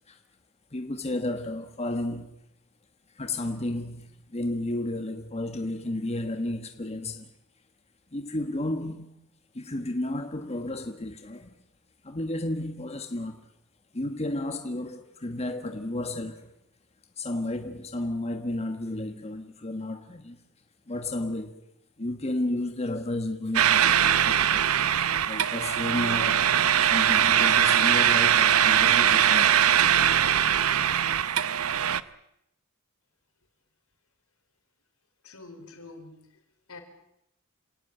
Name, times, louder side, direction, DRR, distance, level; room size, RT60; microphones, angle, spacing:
voice 1, 0.7-2.4 3.1-7.3 8.1-9.1 9.5-11.5 12.0-13.4 13.9-16.5 17.2-20.4 20.9-21.6 22.0-24.7 25.2-26.5 26.8-29.6, left 1 dB, 30° left, 1.5 m, -32 dB
sound 1, 23.5-32.0, right 9 dB, 80° right, 0.9 m, -21 dB
voice 2, 35.2-36.2 36.7-36.8, left 3 dB, 80° left, 4.6 m, -45 dB
27.5 x 18.5 x 8.8 m
head